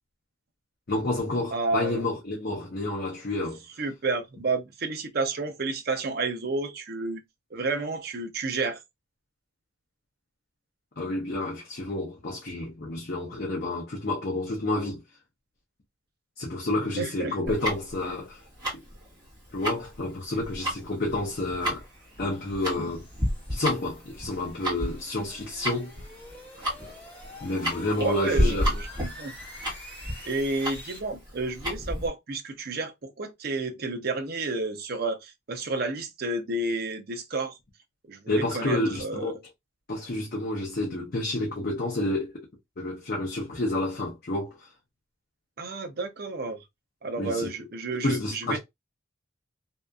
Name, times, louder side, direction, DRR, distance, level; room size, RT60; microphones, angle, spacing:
voice 1, 0.9-3.6 11.0-15.0 16.4-18.4 19.5-21.8 22.2-23.1 23.5-25.9 27.4-28.7 38.3-39.4 39.9-42.4 42.8-44.7 47.2-47.5 48.0-48.6, left 2 dB, 50° left, 0.7 m, -29 dB
voice 2, 1.5-2.0 3.8-7.2 7.5-8.8 17.0-17.5 27.9-29.3 30.2-37.5 38.1-39.3 45.6-46.6 47.0-48.6, right 3 dB, 50° right, 0.6 m, -31 dB
Tick-tock, 17.5-32.1, equal, 20° right, 1.3 m, -31 dB
sound 1, 19.9-31.0, left 1 dB, 10° left, 1.3 m, -47 dB
2.7 x 2.4 x 2.3 m
head